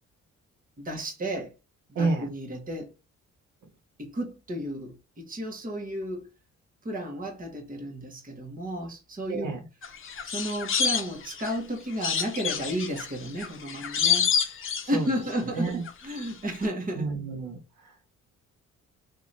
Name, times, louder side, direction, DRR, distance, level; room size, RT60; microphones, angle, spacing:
voice 1, 0.8-1.5 2.0-2.9 4.0-6.3 6.8-9.5 10.2-14.3 14.9-17.1, equal, 25° right, 1.4 m, -33 dB
voice 2, 1.9-2.3 9.3-9.6 14.9-15.1 15.4-15.8 17.0-17.9, right 3 dB, 80° right, 1.2 m, -30 dB
sound 1, 9.8-11.6 12.0-15.3 15.6-16.3 16.5-16.7, left 7 dB, 45° left, 0.7 m, -28 dB
3.1 x 2.8 x 4.0 m
cardioid pair, 90°, 30 cm